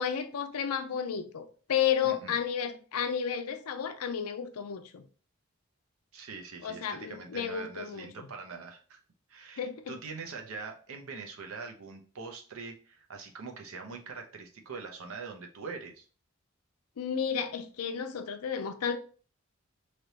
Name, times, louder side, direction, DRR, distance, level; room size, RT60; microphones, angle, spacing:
voice 1, 0.0-5.0 6.6-8.3 9.6-10.0 17.0-19.0, left 8 dB, 85° left, 0.5 m, -32 dB
voice 2, 2.0-2.4 6.1-9.0 9.3-16.1, right 4 dB, 75° right, 0.7 m, -43 dB
3.2 x 2.9 x 2.8 m
head